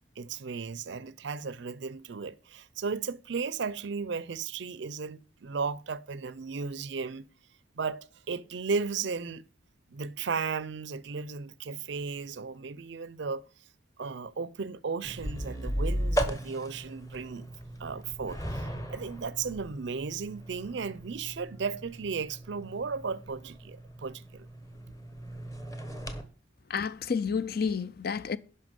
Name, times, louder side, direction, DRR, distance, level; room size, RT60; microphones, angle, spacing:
voice 1, 0.2-7.2 7.7-9.5 9.9-13.4 14.0-17.5 17.8-24.5, right 5 dB, 60° right, 0.5 m, -35 dB
sound 1, 15.0-26.2, equal, 15° left, 1.0 m, -37 dB
voice 2, 26.7-28.4, left 6 dB, 50° left, 0.4 m, -30 dB
11.0 x 5.7 x 5.2 m
head